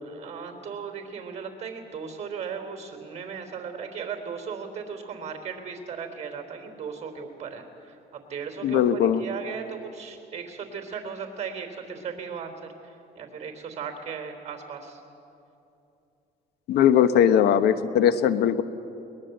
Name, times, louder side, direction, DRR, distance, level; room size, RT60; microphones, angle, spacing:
voice 1, 0.0-15.0, right 6 dB, 40° right, 5 dB, 3.4 m, -37 dB
voice 2, 8.6-9.2 16.7-18.6, left 9 dB, 75° left, 12 dB, 1.0 m, -20 dB
21.5 x 20.5 x 7.8 m, 2.8 s
cardioid pair, 110°, 17 cm